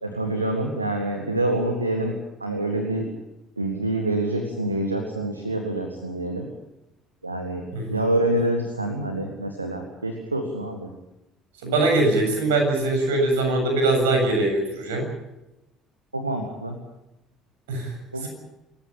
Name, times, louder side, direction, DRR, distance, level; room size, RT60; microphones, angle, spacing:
voice 1, 0.0-2.1 2.4-3.1 3.6-6.5 7.2-7.6 7.9-10.9 16.1-16.8 18.1-18.3, right 1 dB, 90° right, 4 dB, 1.9 m, -26 dB
voice 2, 11.6-15.0 17.7-17.9 18.2-18.3, right 2 dB, 70° right, 3 dB, 7.5 m, -22 dB
28.0 x 15.0 x 8.8 m, 0.93 s
figure-of-eight pair, 55°, 0 cm